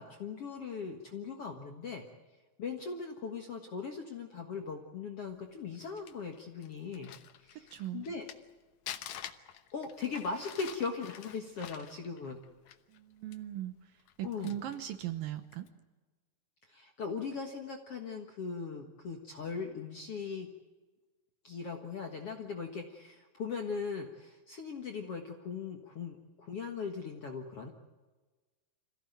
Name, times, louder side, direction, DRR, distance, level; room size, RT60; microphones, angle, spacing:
voice 1, 0.0-2.0 2.6-7.1 7.4-7.7 7.9-8.3 9.7-12.4 14.2-14.6 16.7-20.5 21.4-27.7, left 5 dB, 55° left, 3 dB, 1.7 m, -39 dB
Crumpling crinkling, 5.5-8.5 8.9-13.0 13.3-13.4 14.0-14.9 15.4-15.7, left 10 dB, 80° left, 1.6 m, -47 dB
voice 2, 7.6-8.0 12.9-15.7, right 12 dB, 70° right, 9 dB, 2.3 m, -39 dB
26.5 x 16.5 x 9.2 m, 1.3 s
omnidirectional pair, 4.8 m